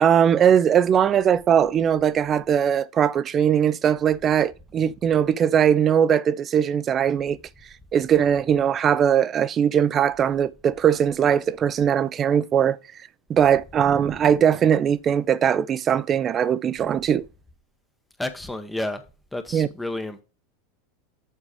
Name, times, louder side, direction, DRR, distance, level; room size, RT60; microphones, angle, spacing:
voice 1, 0.0-7.4 7.9-12.8 13.3-17.2 19.5-19.7, right 8 dB, 35° right, 0.5 m, -20 dB
voice 2, 18.2-19.0 19.3-20.2, left 1 dB, 5° left, 0.9 m, -30 dB
7.4 x 4.7 x 5.0 m
hypercardioid pair, 105°, 0 cm